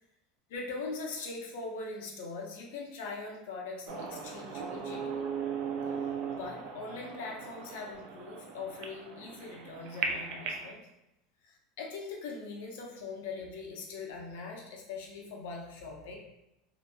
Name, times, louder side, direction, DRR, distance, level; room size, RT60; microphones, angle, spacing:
voice 1, 0.5-5.2 6.3-10.8 11.4-16.2, left 3 dB, 80° left, -1 dB, 0.7 m, -41 dB
sound 1, 3.9-10.7, right 6 dB, 50° right, 0.3 m, -38 dB
2.9 x 2.5 x 2.2 m, 0.89 s
supercardioid pair, 165°, 0 cm